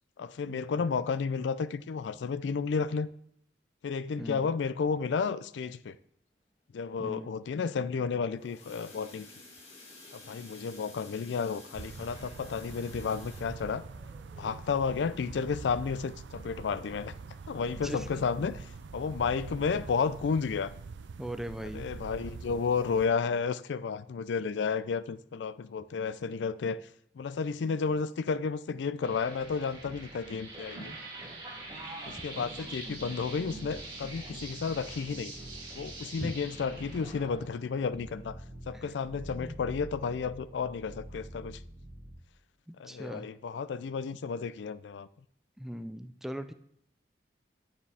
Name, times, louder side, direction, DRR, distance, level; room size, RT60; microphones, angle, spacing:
voice 1, 0.2-3.1 3.8-5.9 6.7-9.3 10.1-13.8 14.4-17.1 17.5-18.6 18.9-20.7 21.7-26.8 27.2-30.9 32.1-35.3 35.8-38.4 38.7-41.6 42.8-45.1, left 5 dB, 75° left, 0.4 m, -32 dB
voice 2, 4.2-4.5 7.0-7.3 17.8-18.2 21.2-21.8 32.4-32.5 36.2-36.3 38.7-38.8 39.3-39.6 42.8-43.3 45.6-46.5, equal, ahead, 0.4 m, -39 dB
sound 1, 8.1-16.7 17.1-17.3 17.6-17.7 18.2-18.3, left 2 dB, 35° left, 2.0 m, -53 dB
sound 2, 11.7-23.1, right 4 dB, 85° right, 0.5 m, -45 dB
sound 3, 29.0-42.1, right 2 dB, 25° right, 2.7 m, -44 dB
9.6 x 8.7 x 3.4 m
head